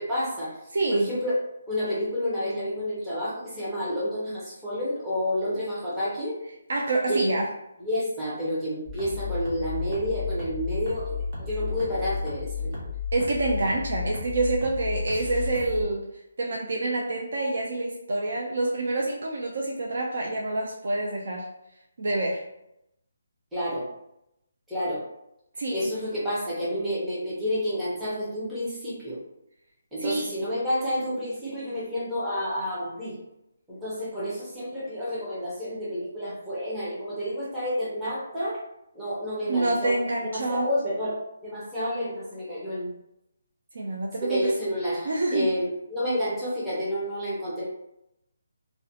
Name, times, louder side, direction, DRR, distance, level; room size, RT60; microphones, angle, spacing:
voice 1, 0.0-0.5 0.9-1.3 1.7-6.3 7.1-7.3 7.8-11.1 11.4-12.8 23.5-23.9 24.7-25.0 25.7-29.2 29.9-33.1 33.7-38.6 38.9-40.0 40.3-42.9 44.2-47.6, equal, 5° right, -10 dB, 0.6 m, -29 dB
voice 2, 0.7-1.1 6.7-7.5 13.1-16.0 16.4-21.5 22.0-22.5 25.6-25.9 30.0-30.3 39.5-40.7 43.7-44.5 45.1-45.5, right 2 dB, 60° right, -1 dB, 0.4 m, -27 dB
sound 1, 8.9-15.8, left 5 dB, 35° right, 0.8 m, -33 dB
2.4 x 2.1 x 2.7 m, 0.82 s
hypercardioid pair, 170°, 0 cm